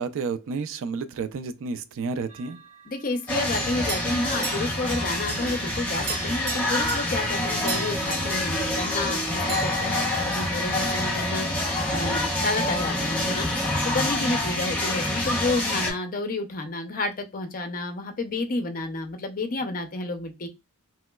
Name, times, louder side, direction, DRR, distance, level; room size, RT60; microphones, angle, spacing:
voice 1, 0.0-2.6, right 4 dB, 60° right, 0.3 m, -31 dB
sound 1, 2.3-3.1 3.5-9.2 9.5-10.9, right 4 dB, 85° right, 0.7 m, -38 dB
voice 2, 2.9-11.5 11.9-13.5 13.8-20.5, left 2 dB, 40° left, 0.5 m, -30 dB
sound 2, 3.3-15.9, left 1 dB, 5° left, 0.7 m, -27 dB
3.0 x 2.9 x 2.2 m
head